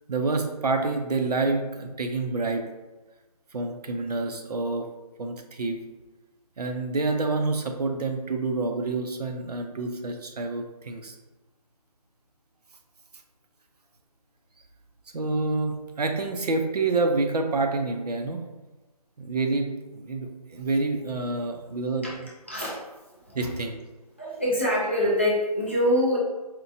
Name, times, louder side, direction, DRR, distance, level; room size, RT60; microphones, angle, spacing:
voice 1, 0.1-2.7 3.5-4.9 5.2-5.8 6.6-11.2 15.1-18.4 19.2-19.7 19.9-22.1 23.3-23.8, right 3 dB, 75° right, 4 dB, 0.6 m, -27 dB
voice 2, 22.5-23.5 24.2-26.2, equal, 20° left, -6 dB, 0.4 m, -25 dB
4.3 x 2.2 x 2.6 m, 1.1 s
figure-of-eight pair, 160°, 20 cm